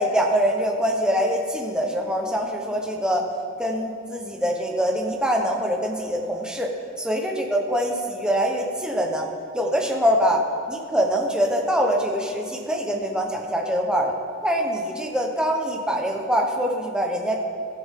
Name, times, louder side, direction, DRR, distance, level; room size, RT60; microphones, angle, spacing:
voice 1, 0.0-3.2 3.6-6.7 7.0-9.3 9.5-14.1 14.4-17.4, equal, 5° right, 1 dB, 1.0 m, -24 dB
15.0 x 7.0 x 3.7 m, 2.5 s
head